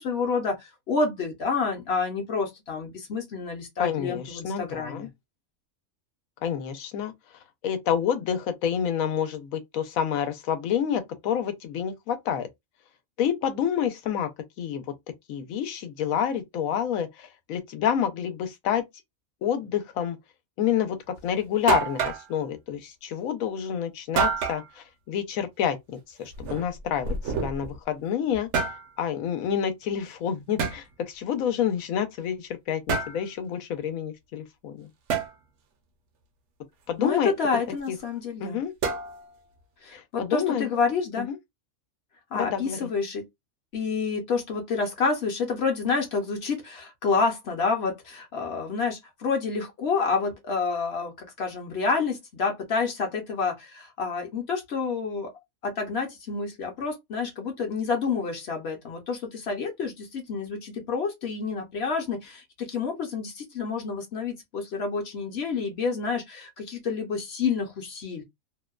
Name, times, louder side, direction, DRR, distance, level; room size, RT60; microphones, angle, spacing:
voice 1, 0.0-5.1 37.0-38.6 39.8-41.3 42.3-43.2 43.7-55.3 55.6-68.2, left 4 dB, 55° left, 0.9 m, -29 dB
voice 2, 3.8-5.1 6.4-7.1 7.6-12.5 13.2-14.3 14.6-14.8 15.3-18.8 19.4-20.2 20.6-28.5 29.0-34.9 36.9-37.3 37.9-38.0 38.4-38.7 39.9-40.7 41.2-41.4 42.3-42.9, left 8 dB, 85° left, 1.0 m, -28 dB
sound 1, 21.2-21.3 21.7-22.3 24.2-24.6 26.3-27.8 28.3-28.8 30.6-30.8 32.9-33.2 35.1-35.3 38.8-39.4, right 5 dB, 65° right, 0.9 m, -27 dB
2.6 x 2.1 x 2.3 m
omnidirectional pair, 1.4 m